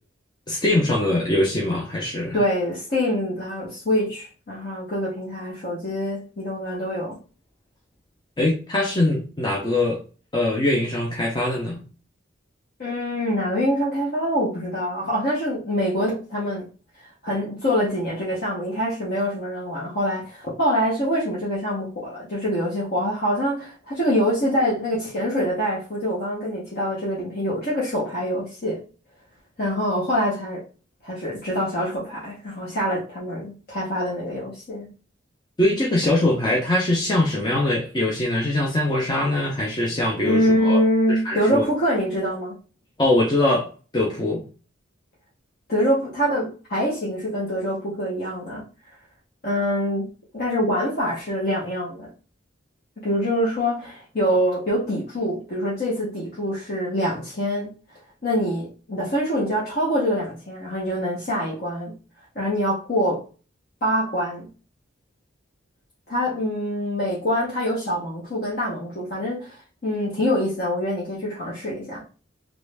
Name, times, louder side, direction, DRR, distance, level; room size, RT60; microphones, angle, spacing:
voice 1, 0.5-2.4 8.4-10.0 10.3-11.8 35.6-40.8 41.1-41.6 43.0-44.4, left 1 dB, 20° left, -3 dB, 0.5 m, -22 dB
voice 2, 2.3-7.2 12.8-16.7 17.2-28.8 29.6-30.6 31.0-34.9 40.2-42.5 45.7-48.6 49.4-52.1 53.0-57.7 58.2-61.9 62.3-63.2 63.8-64.5 66.1-72.0, equal, 50° left, -6 dB, 0.9 m, -25 dB
3.0 x 2.5 x 3.3 m, 0.36 s
head